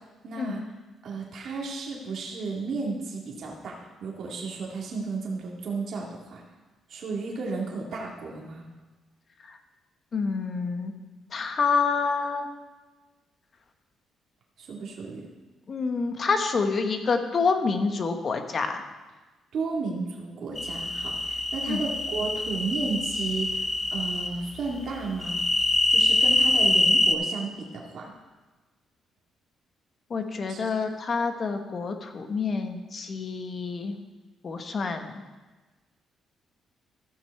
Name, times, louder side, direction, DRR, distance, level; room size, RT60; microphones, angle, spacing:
voice 1, 0.2-0.6 1.0-6.4 6.9-8.6 14.6-15.3 19.5-25.4 25.9-28.1 30.5-30.7, right 4 dB, 65° right, -2 dB, 2.0 m, -33 dB
voice 2, 10.1-10.9 11.3-12.5 15.7-18.8 21.7-21.8 30.1-33.9 34.4-35.1, left 4 dB, 45° left, 6 dB, 1.1 m, -27 dB
sound 1, 20.6-24.3 25.2-27.1, left 2 dB, 25° left, 0.8 m, -24 dB
14.5 x 6.1 x 4.6 m, 1.2 s
cardioid pair, 90°, 0 cm